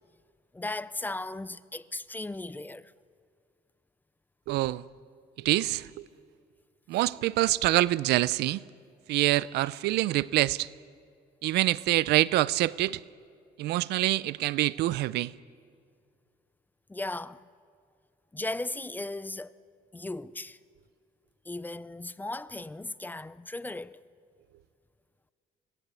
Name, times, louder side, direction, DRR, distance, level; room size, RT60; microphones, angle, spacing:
voice 1, 0.5-2.9 16.9-17.5 18.3-19.5 19.9-20.6 21.5-24.0, left 2 dB, 10° left, 0.5 m, -36 dB
voice 2, 4.5-4.8 5.4-6.0 6.9-8.6 9.1-10.7 11.4-13.0 13.6-15.3, right 16 dB, 80° right, 0.6 m, -26 dB
25.5 x 19.0 x 8.3 m
cardioid pair, 110°, 17 cm